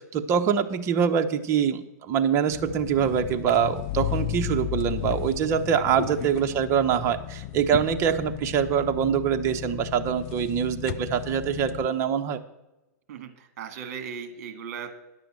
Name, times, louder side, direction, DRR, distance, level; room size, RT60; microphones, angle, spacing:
voice 1, 0.0-12.4, right 8 dB, 30° right, 7 dB, 0.9 m, -24 dB
sound 1, 2.5-11.9, left 14 dB, 35° left, 0.5 m, -34 dB
voice 2, 13.1-15.0, right 7 dB, 55° right, 9 dB, 1.9 m, -37 dB
10.5 x 6.8 x 7.5 m, 1.0 s
hypercardioid pair, 140°, 9 cm